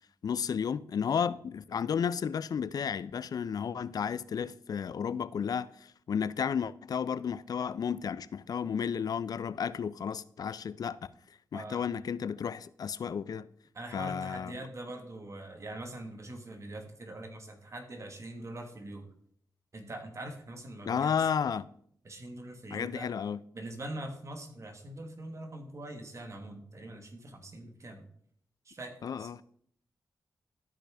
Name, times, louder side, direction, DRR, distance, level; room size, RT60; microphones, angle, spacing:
voice 1, 0.2-11.0 11.5-13.5 13.9-14.6 20.9-21.7 22.7-23.4 29.0-29.4, left 7 dB, 60° left, 0.4 m, -32 dB
voice 2, 11.5-11.9 13.7-19.1 19.7-21.3 22.0-23.1 23.5-28.1 28.6-29.3, right 1 dB, 45° right, 1.4 m, -43 dB
13.0 x 4.9 x 3.4 m
cardioid pair, 70°, 7 cm